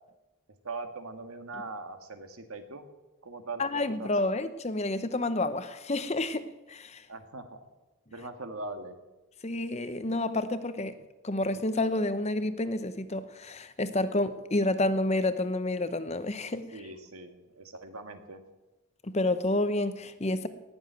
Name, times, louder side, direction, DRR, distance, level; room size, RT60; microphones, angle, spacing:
voice 1, 0.6-2.9 3.2-4.1 7.1-7.6 8.1-9.0 16.7-18.4, right 3 dB, 75° right, 1.7 m, -41 dB
voice 2, 3.6-7.0 9.4-11.0 11.2-16.7 19.0-20.5, left 2 dB, 30° left, 0.7 m, -29 dB
18.5 x 7.3 x 9.2 m
head